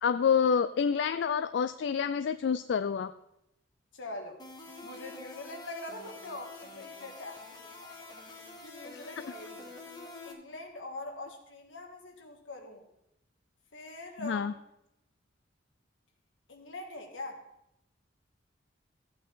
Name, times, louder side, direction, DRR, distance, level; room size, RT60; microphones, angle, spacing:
voice 1, 0.0-3.1 14.2-14.5, left 6 dB, 65° left, 12 dB, 0.3 m, -28 dB
voice 2, 3.9-4.4 4.8-9.7 10.2-12.9 13.7-14.5 16.5-17.4, left 2 dB, 80° left, 3 dB, 1.8 m, -44 dB
sound 1, 4.4-10.3, left 2 dB, 20° left, 1.7 m, -47 dB
15.0 x 8.6 x 3.7 m, 0.84 s
head